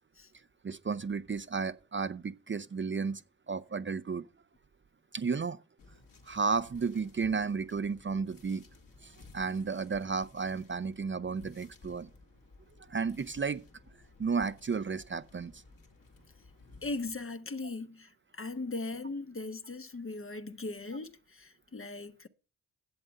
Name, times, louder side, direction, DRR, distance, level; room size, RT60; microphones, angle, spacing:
voice 1, 0.6-3.2 3.5-4.2 5.1-5.6 6.2-8.6 9.0-12.1 12.8-13.6 14.2-15.6, right 5 dB, 30° right, 0.7 m, -33 dB
sound 1, 5.8-17.2, left 3 dB, 55° left, 2.8 m, -57 dB
voice 2, 16.8-22.3, left 3 dB, 30° left, 1.2 m, -39 dB
11.0 x 7.8 x 5.4 m
supercardioid pair, 60°, 41 cm